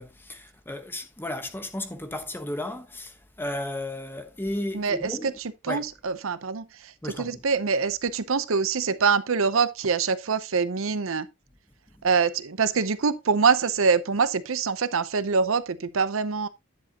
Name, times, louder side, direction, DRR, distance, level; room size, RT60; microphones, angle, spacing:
voice 1, 0.0-5.4 5.7-5.9 7.0-7.4, left 1 dB, 10° left, 1.0 m, -34 dB
voice 2, 4.7-5.3 5.6-11.3 12.0-16.5, right 5 dB, 75° right, 0.7 m, -24 dB
10.5 x 7.4 x 2.8 m
head